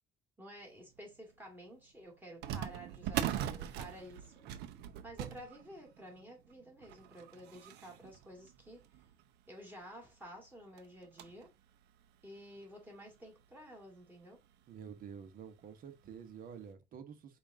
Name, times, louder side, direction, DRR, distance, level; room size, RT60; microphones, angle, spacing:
voice 1, 0.4-4.5 5.0-8.8 9.5-11.5 12.2-14.4, equal, 10° right, 2.0 m, -52 dB
sound 1, 1.0-1.1 2.4-9.3 9.9-10.0 10.2-10.4 10.8-11.5 12.0-12.1 12.9-13.0 13.4-13.5 14.9-15.2 15.6-15.7 16.3-16.5, right 11 dB, 85° right, 0.5 m, -42 dB
voice 2, 14.7-17.4, right 7 dB, 55° right, 1.0 m, -49 dB
5.2 x 2.5 x 3.6 m
cardioid pair, 110°, 17 cm